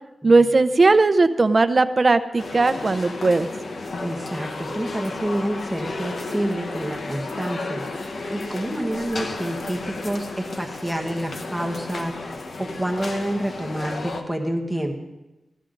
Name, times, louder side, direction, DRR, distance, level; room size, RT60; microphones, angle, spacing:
voice 1, 0.2-3.5, right 3 dB, 35° right, 10 dB, 0.6 m, -18 dB
sound 1, 2.4-14.2, left 3 dB, 65° left, 1.1 m, -33 dB
voice 2, 4.0-12.2 12.4-14.9, right 1 dB, 5° right, 1 dB, 1.2 m, -28 dB
15.0 x 12.5 x 3.9 m, 1.0 s
wide cardioid pair, 130°, 0 cm